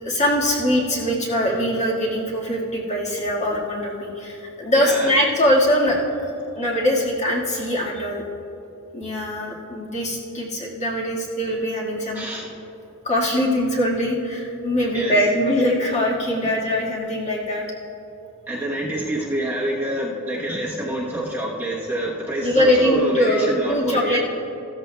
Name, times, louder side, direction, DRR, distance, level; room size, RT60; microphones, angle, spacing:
voice 1, 0.0-6.0 6.5-8.2 8.9-12.2 13.0-17.6 22.4-24.2, equal, 35° left, -4 dB, 1.7 m, -22 dB
voice 2, 4.7-5.1 12.1-12.5 14.9-15.2 18.5-24.2, right 1 dB, 10° right, -5 dB, 1.0 m, -26 dB
14.5 x 13.5 x 2.2 m, 2.9 s
head